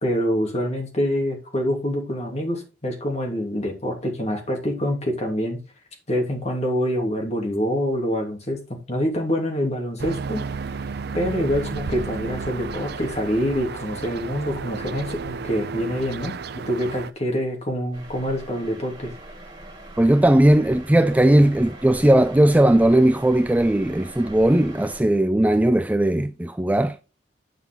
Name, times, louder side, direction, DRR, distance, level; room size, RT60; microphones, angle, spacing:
voice 1, 0.0-5.6 6.1-10.5 11.1-19.1, equal, 40° left, 3.0 m, -26 dB
sound 1, 10.0-17.1, right 4 dB, 65° right, 0.5 m, -32 dB
sound 2, 17.9-25.0, right 1 dB, 25° right, 3.3 m, -42 dB
voice 2, 20.0-27.0, right 1 dB, 10° right, 0.4 m, -18 dB
9.2 x 6.0 x 3.9 m
head